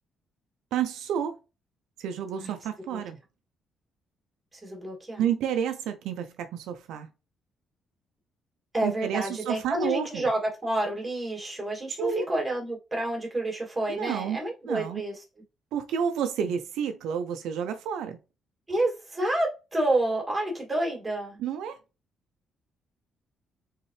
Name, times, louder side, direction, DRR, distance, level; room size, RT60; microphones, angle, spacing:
voice 1, 0.7-1.4 2.0-3.2 5.2-7.1 8.8-10.3 12.0-12.3 13.9-14.4 14.7-15.0 15.7-18.2 21.4-21.8, right 8 dB, 85° right, 0.6 m, -30 dB
voice 2, 4.5-5.2 8.7-15.1 18.7-21.4, right 1 dB, 15° right, 2.5 m, -29 dB
4.2 x 3.8 x 3.3 m
cardioid pair, 90°, 0 cm